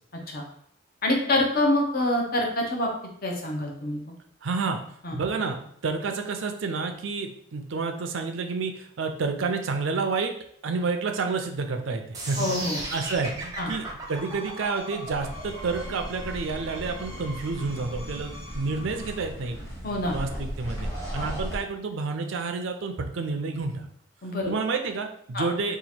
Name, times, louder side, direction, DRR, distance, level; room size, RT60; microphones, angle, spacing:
voice 1, 1.0-2.9 3.2-4.0 5.0-5.2 12.4-12.8 13.6-13.7 19.8-20.2 21.2-21.3 24.2-24.5 25.3-25.5, left 1 dB, 45° left, 1 dB, 0.7 m, -26 dB
voice 2, 4.4-4.8 5.1-5.6 5.8-10.3 10.6-19.6 20.1-23.9 24.5-25.8, right 4 dB, 65° right, 5 dB, 0.5 m, -29 dB
sound 1, 12.1-18.2, right 2 dB, 20° right, 0.6 m, -36 dB
Screech, 14.0-19.4, left 2 dB, 80° left, 1.1 m, -45 dB
sound 2, 15.0-21.6, equal, 15° left, 1.0 m, -37 dB
2.8 x 2.4 x 4.2 m, 0.66 s
head